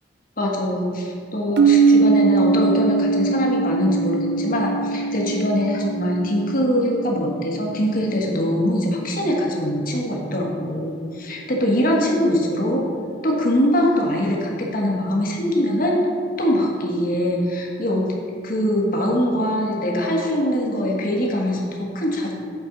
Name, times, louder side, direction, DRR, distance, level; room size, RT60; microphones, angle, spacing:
voice 1, 0.4-12.9 13.2-16.1 16.4-18.1 18.4-22.3, equal, 50° left, -1 dB, 1.4 m, -22 dB
sound 1, 1.6-9.4, right 4 dB, 65° right, 0.5 m, -22 dB
8.3 x 5.3 x 5.1 m, 2.2 s
head